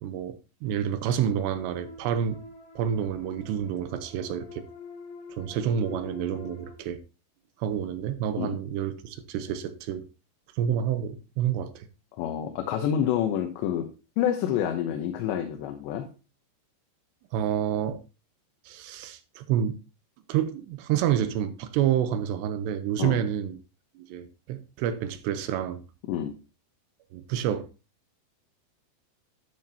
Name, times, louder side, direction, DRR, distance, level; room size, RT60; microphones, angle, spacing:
voice 1, 0.0-0.4 0.6-2.4 2.8-4.7 5.4-7.0 7.6-10.0 10.6-11.9 17.3-18.0 18.7-19.8 20.3-23.6 24.0-25.8 27.1-27.7, right 9 dB, 85° right, 3.0 m, -28 dB
sound 1, 1.3-6.8, left 4 dB, 60° left, 6.4 m, -45 dB
voice 2, 12.2-13.9 14.2-16.1 23.0-23.2 26.1-26.3, left 10 dB, 80° left, 3.3 m, -28 dB
12.5 x 9.5 x 2.9 m
omnidirectional pair, 5.1 m